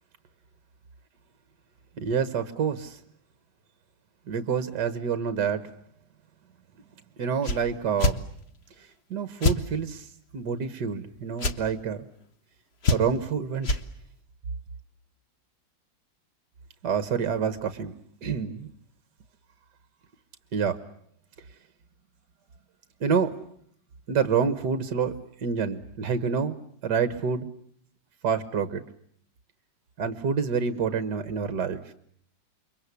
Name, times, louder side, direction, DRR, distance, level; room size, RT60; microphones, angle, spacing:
voice 1, 2.0-3.0 4.3-5.7 7.2-8.2 9.1-10.1 10.3-12.1 12.9-13.8 16.8-17.9 18.2-18.7 20.5-20.8 23.0-23.4 24.1-26.6 26.8-27.5 28.2-28.8 30.0-31.9, right 6 dB, 65° right, 12 dB, 1.9 m, -27 dB
sound 1, 7.4-7.6 8.0-8.2 9.4-9.6 11.4-11.6 12.8-13.2 13.6-13.8, left 3 dB, 35° left, 1.6 m, -23 dB
29.5 x 24.0 x 8.4 m, 0.64 s
omnidirectional pair, 2.1 m